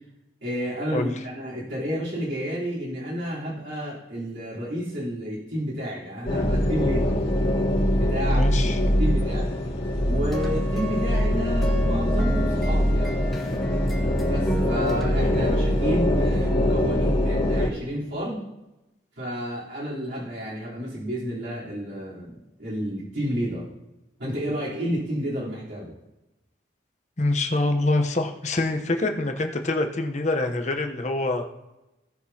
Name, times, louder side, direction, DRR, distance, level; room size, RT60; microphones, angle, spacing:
voice 1, 0.4-7.2 8.0-9.5 10.0-13.1 14.2-18.4 19.2-23.7 24.2-25.9, equal, 75° right, -9 dB, 3.6 m, -31 dB
sound 1, 6.3-17.7, equal, 65° left, 2.1 m, -23 dB
voice 2, 8.3-8.8 15.3-15.5 27.2-31.4, left 2 dB, 35° left, 4 dB, 0.9 m, -25 dB
sound 2, 10.1-16.0, left 1 dB, ahead, 1.5 m, -32 dB
17.5 x 6.1 x 2.8 m, 0.98 s
head